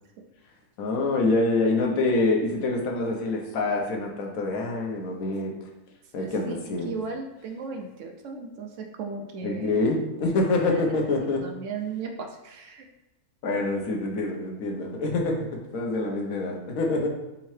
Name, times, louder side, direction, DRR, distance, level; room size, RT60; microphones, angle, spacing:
voice 1, 0.8-5.5 6.1-6.9 9.4-11.4 13.4-15.4 15.7-17.1, left 2 dB, 75° left, 1 dB, 1.2 m, -26 dB
voice 2, 6.1-6.5 6.8-9.9 10.7-10.8 11.3-12.9, right 4 dB, 70° right, 3 dB, 0.8 m, -36 dB
4.2 x 3.7 x 3.1 m, 0.99 s
omnidirectional pair, 1.5 m